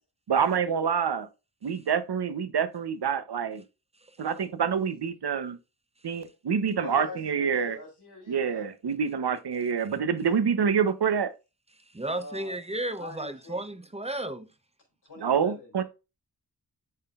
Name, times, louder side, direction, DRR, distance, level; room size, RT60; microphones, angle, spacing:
voice 1, 0.3-1.3 1.6-3.6 4.2-5.6 6.0-7.8 8.3-11.3 15.2-15.8, right 7 dB, 70° right, 0.8 m, -27 dB
voice 2, 6.8-8.7 10.2-10.4 12.1-12.6 13.0-13.6 15.0-15.8, left 2 dB, 75° left, 3.5 m, -43 dB
voice 3, 11.9-14.5, right 1 dB, 15° right, 0.7 m, -33 dB
11.0 x 3.8 x 2.4 m
wide cardioid pair, 95°, 41 cm